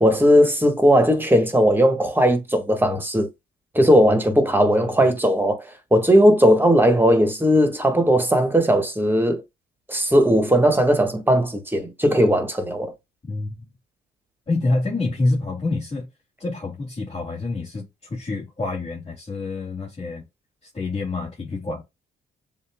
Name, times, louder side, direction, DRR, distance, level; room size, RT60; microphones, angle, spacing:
voice 1, 0.0-3.3 3.7-9.4 9.9-12.9, equal, 10° right, 1.4 m, -18 dB
voice 2, 13.3-13.6 14.5-16.1 16.4-20.3 20.7-21.8, left 2 dB, 30° left, 2.5 m, -27 dB
7.1 x 2.7 x 2.2 m
cardioid pair, 90°, 20 cm